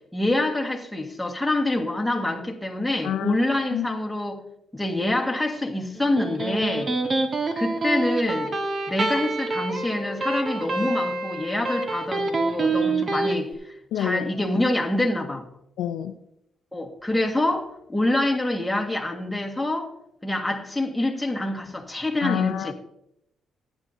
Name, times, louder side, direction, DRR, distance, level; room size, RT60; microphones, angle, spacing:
voice 1, 0.1-4.4 4.7-6.9 7.6-8.5 8.9-15.4 16.7-19.9 20.2-22.7, left 1 dB, 5° left, 1 dB, 1.8 m, -26 dB
voice 2, 3.0-3.4 3.7-3.9 13.9-14.3 15.8-16.2 22.2-22.7, left 10 dB, 85° left, 10 dB, 0.5 m, -27 dB
Electric guitar, 6.0-13.4, right 3 dB, 40° right, 1.4 m, -27 dB
15.0 x 10.0 x 2.7 m, 0.77 s
cardioid pair, 90°, 0 cm